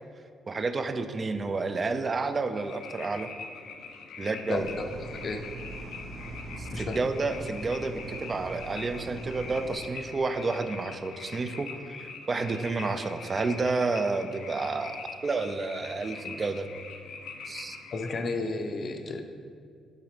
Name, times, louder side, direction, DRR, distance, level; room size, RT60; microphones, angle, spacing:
voice 1, 0.5-3.3 4.2-4.7 6.6-15.0 15.2-16.7 17.5-17.8, right 3 dB, 35° right, 9 dB, 0.5 m, -30 dB
sound 1, 2.6-18.2, left 4 dB, 85° left, 0.7 m, -43 dB
voice 2, 4.5-4.9 5.2-5.4 6.7-7.0 17.9-19.2, left 3 dB, 50° left, 6 dB, 0.7 m, -32 dB
sound 2, 4.5-9.8, right 2 dB, 75° right, 2.0 m, -41 dB
9.1 x 4.0 x 5.0 m, 2.2 s
cardioid pair, 90°, 0 cm